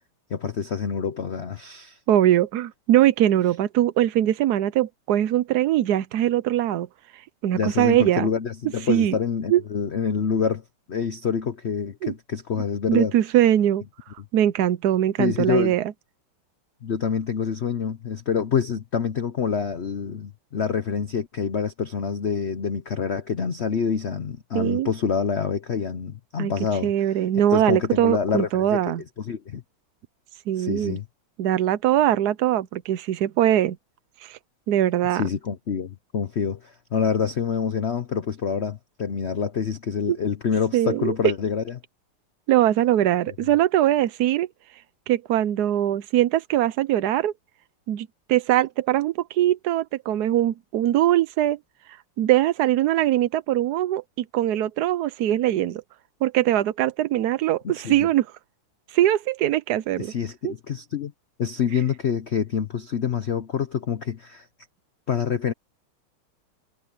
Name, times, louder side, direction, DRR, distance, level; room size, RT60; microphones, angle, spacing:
voice 1, 0.3-2.0 7.5-13.1 14.2-14.3 15.2-15.8 16.8-28.9 29.2-29.6 30.6-31.1 35.1-41.7 57.7-58.1 60.0-61.1 61.4-64.5 65.1-65.5, left 6 dB, 70° left, 0.6 m, -27 dB
voice 2, 2.1-6.9 7.1-8.3 8.9-9.2 9.5-9.6 12.0-12.1 12.9-13.8 14.3-15.8 24.5-24.9 26.4-26.5 26.8-29.0 30.5-31.0 31.4-33.8 34.2-34.4 34.7-35.2 40.1-40.2 40.7-41.1 42.5-44.5 45.1-47.3 47.9-51.6 51.9-55.8 56.2-58.3 58.9-60.1 60.4-60.5, right 12 dB, 70° right, 1.0 m, -21 dB
omnidirectional pair, 2.3 m